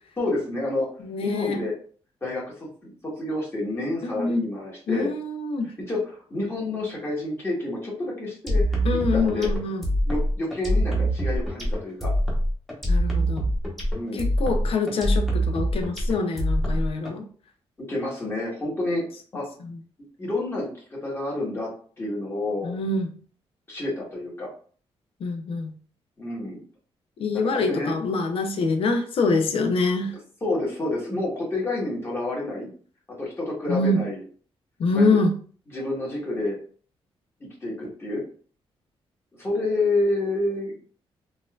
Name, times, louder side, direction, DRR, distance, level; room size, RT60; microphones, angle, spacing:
voice 1, 0.2-0.9 1.2-1.7 2.2-5.1 5.9-9.5 10.0-12.1 13.9-14.3 17.8-19.0 19.3-19.5 20.2-21.7 22.0-22.7 23.7-24.5 26.2-26.6 27.5-27.9 30.4-32.7 33.2-34.2 34.9-35.2 35.7-36.6 37.4-38.2 39.4-40.7, left 2 dB, 25° left, -4 dB, 1.4 m, -29 dB
voice 2, 1.0-1.7 4.0-4.5 4.9-5.7 8.8-9.8 12.9-13.4 14.1-17.3 19.7-19.8 22.6-23.1 25.2-25.7 27.2-30.1 33.7-34.0 34.8-35.3, left 3 dB, 65° left, 6 dB, 0.7 m, -25 dB
sound 1, 8.5-17.1, equal, ahead, 1.0 m, -24 dB
4.0 x 2.6 x 2.4 m, 0.43 s
cardioid pair, 120°, 10 cm